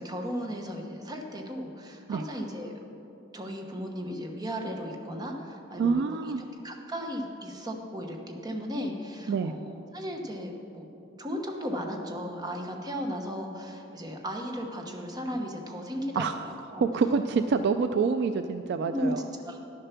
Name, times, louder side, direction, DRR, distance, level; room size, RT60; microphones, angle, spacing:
voice 1, 0.0-2.7 3.3-6.3 6.6-16.4 16.7-16.8 18.8-19.1 19.4-19.6, equal, 20° right, 2 dB, 1.0 m, -35 dB
voice 2, 5.8-6.4 9.3-9.5 16.2-16.3 16.8-19.2, right 5 dB, 60° right, 9 dB, 0.3 m, -26 dB
10.5 x 6.8 x 5.8 m, 2.8 s
head